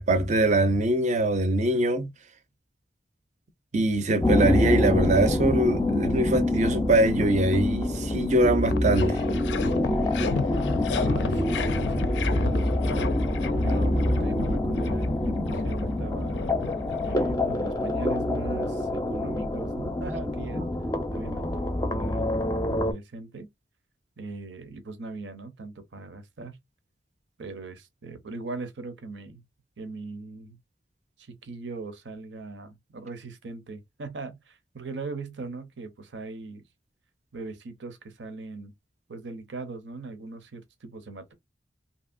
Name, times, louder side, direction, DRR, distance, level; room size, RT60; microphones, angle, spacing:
voice 1, 0.0-2.1 3.7-9.2, right 2 dB, 40° right, 0.5 m, -23 dB
sound 1, 4.2-22.9, left 1 dB, 20° left, 0.5 m, -26 dB
sound 2, 7.9-8.0 8.3-17.7, left 5 dB, 75° left, 0.4 m, -34 dB
voice 2, 10.9-13.2 13.6-16.4 17.0-20.6 21.1-22.3 22.7-23.5 24.2-26.6 27.4-29.4 29.8-30.6 31.2-36.6 37.3-38.7 39.1-41.3, right 3 dB, 80° right, 0.7 m, -39 dB
2.8 x 2.7 x 2.4 m
head